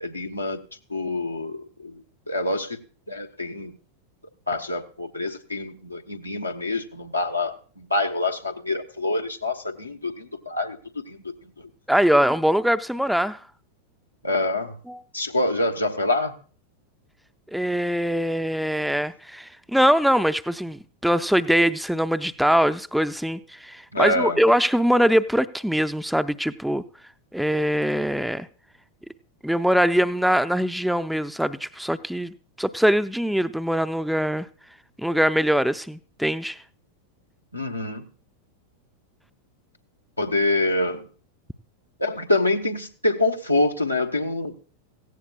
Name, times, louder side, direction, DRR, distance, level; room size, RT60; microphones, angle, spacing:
voice 1, 0.0-0.6 0.9-2.8 3.1-3.7 4.5-10.8 11.1-11.2 14.2-14.7 15.1-16.3 23.9-24.4 37.5-38.0 40.2-41.0 42.0-44.5, left 2 dB, 85° left, 1.1 m, -26 dB
voice 2, 11.9-13.4 14.9-15.0 17.5-26.8 27.3-28.5 29.4-34.5 35.0-36.6, equal, ahead, 0.4 m, -22 dB
17.0 x 15.5 x 2.3 m
figure-of-eight pair, 90°, 0 cm